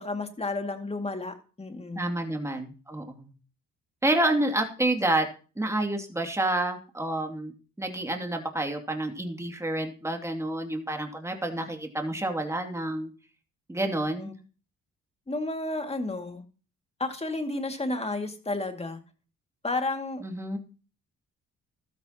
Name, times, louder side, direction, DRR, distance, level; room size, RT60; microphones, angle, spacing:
voice 1, 0.0-2.1 14.2-14.3 15.3-16.4 17.0-19.0 19.6-20.2, left 2 dB, 20° left, 5 dB, 2.3 m, -32 dB
voice 2, 1.9-3.3 4.0-5.3 5.6-7.5 7.8-13.1 13.7-14.3 20.2-20.6, right 1 dB, 10° right, 4 dB, 2.6 m, -29 dB
14.0 x 13.0 x 3.0 m, 0.36 s
cardioid pair, 90°, 30 cm